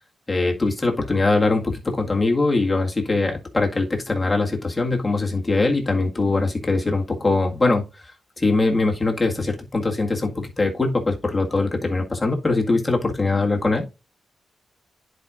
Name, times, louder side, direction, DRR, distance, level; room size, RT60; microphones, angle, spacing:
voice 1, 0.3-7.8 8.4-13.9, left 3 dB, 25° left, 1.8 m, -22 dB
10.5 x 4.9 x 2.5 m
cardioid pair, 75°, 0 cm